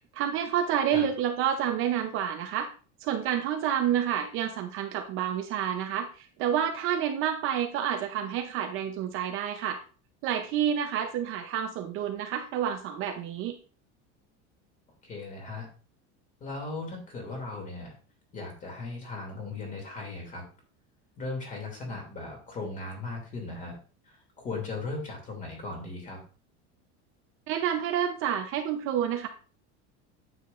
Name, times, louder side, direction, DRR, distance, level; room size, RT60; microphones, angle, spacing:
voice 1, 0.1-2.7 3.0-9.8 10.2-13.6 27.5-29.3, right 9 dB, 40° right, 5 dB, 0.7 m, -29 dB
voice 2, 15.0-15.7 16.4-17.9 18.3-20.4 21.2-23.8 24.0-26.2, left 3 dB, 25° left, 1 dB, 2.7 m, -37 dB
9.5 x 7.4 x 2.5 m, 0.37 s
cardioid pair, 175°, 34 cm